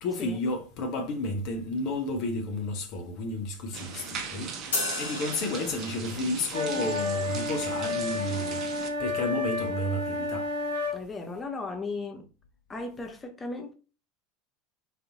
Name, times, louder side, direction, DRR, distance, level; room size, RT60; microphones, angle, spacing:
voice 1, 0.0-8.6 9.0-10.5, left 2 dB, 45° left, 0.7 m, -32 dB
sound 1, 3.7-8.9, right 5 dB, 35° right, 0.7 m, -39 dB
sound 2, 4.7-6.3, left 3 dB, 70° left, 1.1 m, -33 dB
sound 3, 6.5-11.0, left 2 dB, 70° right, 0.9 m, -31 dB
voice 2, 10.9-12.3 12.7-13.7, left 3 dB, 15° left, 0.7 m, -36 dB
4.0 x 2.6 x 2.7 m
figure-of-eight pair, 80°, 0 cm